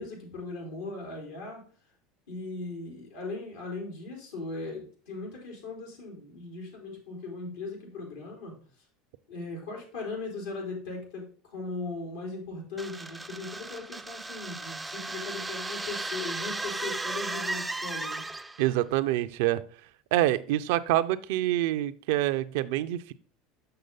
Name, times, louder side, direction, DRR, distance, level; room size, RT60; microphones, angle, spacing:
voice 1, 0.0-1.6 2.3-8.5 9.3-18.2, left 3 dB, 90° left, -1 dB, 3.6 m, -38 dB
sound 1, 12.8-18.7, right 2 dB, 10° right, 0.4 m, -35 dB
voice 2, 18.6-19.6 20.1-23.1, right 14 dB, 75° right, 13 dB, 0.5 m, -26 dB
6.7 x 6.1 x 3.9 m, 0.43 s
supercardioid pair, 100°, 0 cm